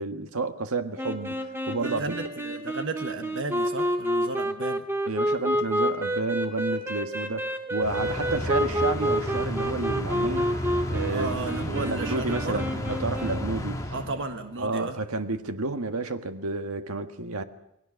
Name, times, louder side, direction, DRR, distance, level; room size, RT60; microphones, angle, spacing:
voice 1, 0.0-2.1 5.1-13.8 14.6-17.4, right 3 dB, 90° right, 1.7 m, -31 dB
sound 1, 1.0-13.6, equal, 10° right, 2.1 m, -29 dB
voice 2, 1.8-4.8 11.1-12.6 13.9-15.0, right 2 dB, 60° right, 1.5 m, -34 dB
sound 2, 7.8-14.6, equal, 15° left, 2.3 m, -33 dB
29.0 x 21.0 x 6.4 m
head